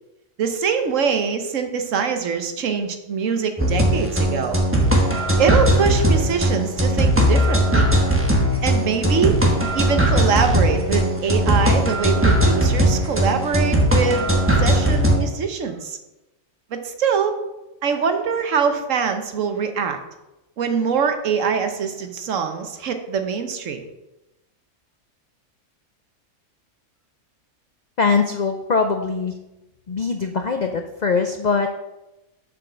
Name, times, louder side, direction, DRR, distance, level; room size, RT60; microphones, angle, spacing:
voice 1, 0.4-4.6 5.4-7.9 8.6-9.4 9.7-16.0 16.7-17.4 17.8-20.0 20.6-23.8, right 6 dB, 65° right, 7 dB, 1.2 m, -23 dB
sound 1, 3.6-15.2, equal, 10° right, 1.1 m, -19 dB
voice 2, 28.0-29.3 29.9-31.7, left 4 dB, 75° left, 6 dB, 0.4 m, -22 dB
7.2 x 5.3 x 6.2 m, 0.97 s
omnidirectional pair, 1.5 m